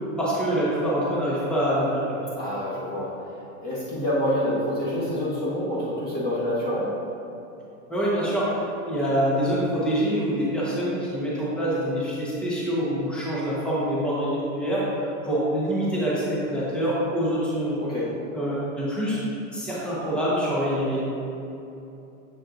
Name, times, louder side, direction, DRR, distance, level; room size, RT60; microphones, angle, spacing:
voice 1, 0.2-2.2 7.9-17.8 18.3-19.2 19.5-21.0, equal, ahead, -8 dB, 1.1 m, -25 dB
voice 2, 2.3-6.9 17.8-18.1, left 1 dB, 20° left, -9 dB, 1.6 m, -27 dB
7.6 x 7.5 x 2.6 m, 2.8 s
supercardioid pair, 155°, 43 cm